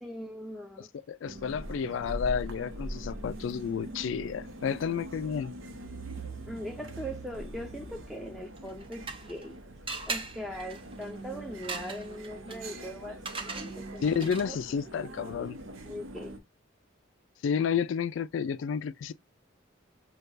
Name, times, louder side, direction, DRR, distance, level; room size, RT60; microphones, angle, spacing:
voice 1, 0.0-0.9 6.5-9.5 10.1-14.6 15.9-16.4, equal, ahead, 0.5 m, -41 dB
voice 2, 1.1-5.5 14.0-15.6 17.4-19.1, left 7 dB, 70° left, 0.3 m, -31 dB
sound 1, 1.2-16.4, right 1 dB, 85° right, 0.9 m, -42 dB
sound 2, 8.6-9.5 9.9-14.7, right 4 dB, 30° right, 0.8 m, -40 dB
6.6 x 2.3 x 2.5 m
head